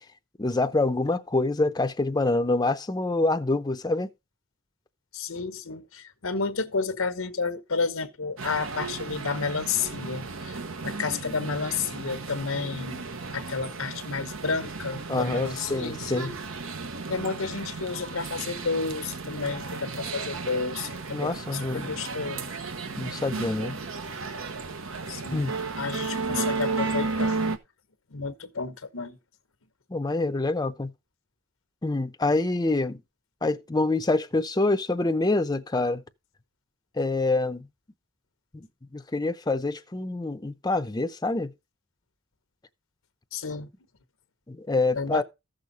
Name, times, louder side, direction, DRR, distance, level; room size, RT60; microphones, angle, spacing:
voice 1, 0.4-4.1 11.2-11.3 15.1-16.3 21.1-21.9 23.0-23.8 25.3-25.5 29.9-30.9 31.8-33.0 33.4-36.0 37.0-37.7 38.9-41.5 44.5-45.2, left 2 dB, 20° left, 0.6 m, -26 dB
voice 2, 5.1-13.0 13.3-16.3 17.1-22.5 25.1-25.4 25.8-27.4 28.1-29.2 43.3-43.7 45.0-45.2, left 4 dB, 90° left, 1.1 m, -31 dB
sound 1, 8.4-27.6, right 4 dB, 75° right, 1.1 m, -34 dB
14.0 x 6.5 x 4.0 m
head